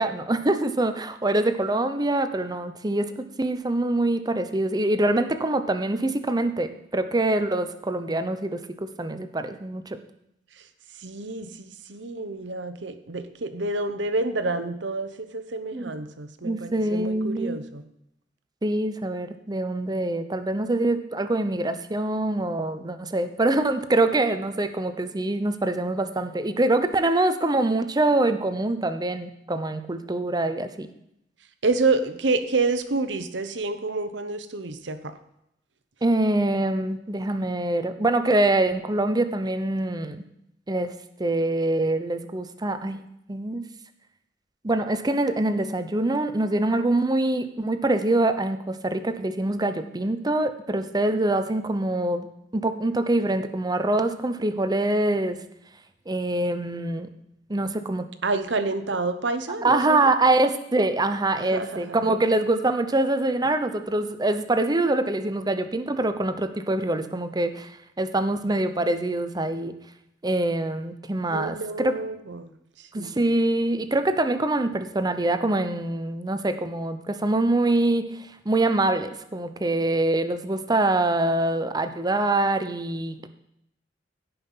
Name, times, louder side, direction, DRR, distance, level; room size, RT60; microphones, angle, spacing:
voice 1, 0.0-10.0 15.7-15.9 16.4-17.6 18.6-30.9 36.0-40.3 40.7-40.9 41.2-43.7 44.6-52.3 52.5-55.4 56.1-57.1 57.5-58.1 59.6-67.7 68.0-69.7 70.2-71.9 72.9-78.1 78.4-83.3, right 2 dB, 20° right, 9 dB, 0.7 m, -24 dB
voice 2, 11.0-17.8 31.6-35.1 58.2-60.1 61.3-62.4 71.3-72.5 72.8-73.1, right 3 dB, 70° right, 9 dB, 1.0 m, -28 dB
16.0 x 5.6 x 5.7 m, 0.79 s
head